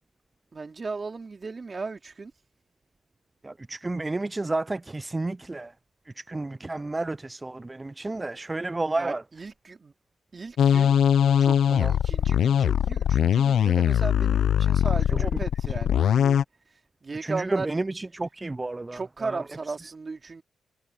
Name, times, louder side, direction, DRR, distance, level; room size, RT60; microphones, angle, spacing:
voice 1, 0.5-2.3 9.0-9.9 10.3-11.0 11.4-16.4 17.0-17.7 18.9-20.4, right 4 dB, 40° right, 3.2 m, -36 dB
voice 2, 3.4-5.7 6.2-9.2 11.7-12.0 15.1-15.3 17.2-19.4, right 2 dB, 20° right, 0.3 m, -31 dB
sound 1, 10.6-16.4, left 9 dB, 75° left, 0.4 m, -21 dB
cardioid pair, 65°, 0 cm